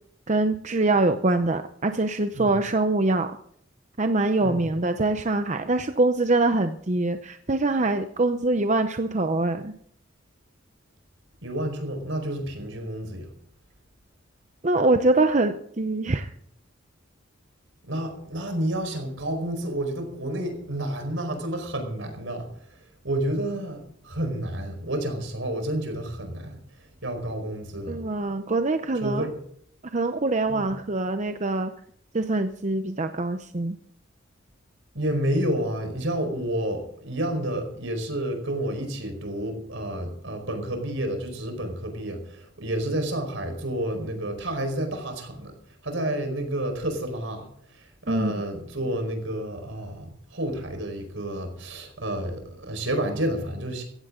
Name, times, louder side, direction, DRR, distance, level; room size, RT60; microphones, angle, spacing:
voice 1, 0.3-3.4 4.0-9.7 14.6-16.3 27.9-29.3 29.9-31.7 32.1-33.8 48.1-48.3, right 2 dB, 35° right, 8 dB, 0.7 m, -24 dB
voice 2, 4.4-4.7 11.4-13.3 17.9-22.5 23.0-26.6 27.0-28.0 29.0-29.3 30.5-30.7 34.9-45.5 45.8-53.8, right 1 dB, 70° right, 5 dB, 4.8 m, -30 dB
16.5 x 15.5 x 3.8 m, 0.67 s
head